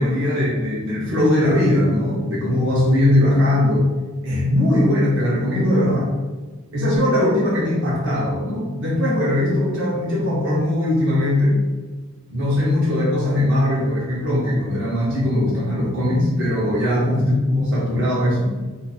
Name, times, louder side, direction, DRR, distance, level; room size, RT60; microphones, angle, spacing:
voice 1, 0.0-3.9 4.2-6.1 6.7-11.6 12.3-18.5, left 1 dB, 60° right, -6 dB, 1.1 m, -20 dB
2.8 x 2.6 x 4.3 m, 1.3 s
head